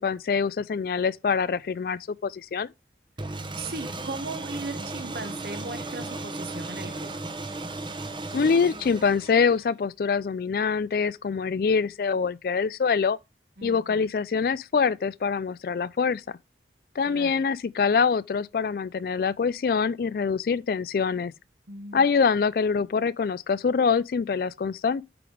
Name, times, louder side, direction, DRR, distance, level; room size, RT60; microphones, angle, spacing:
voice 1, 0.0-2.7 8.3-13.2 13.6-16.2 17.0-21.3 21.9-25.0, left 5 dB, 55° left, 0.3 m, -25 dB
sound 1, 3.2-9.7, right 2 dB, 25° right, 0.8 m, -36 dB
voice 2, 3.3-7.3 13.6-14.1 17.1-17.4 21.7-22.1, right 3 dB, 60° right, 1.0 m, -38 dB
8.5 x 3.5 x 4.9 m
head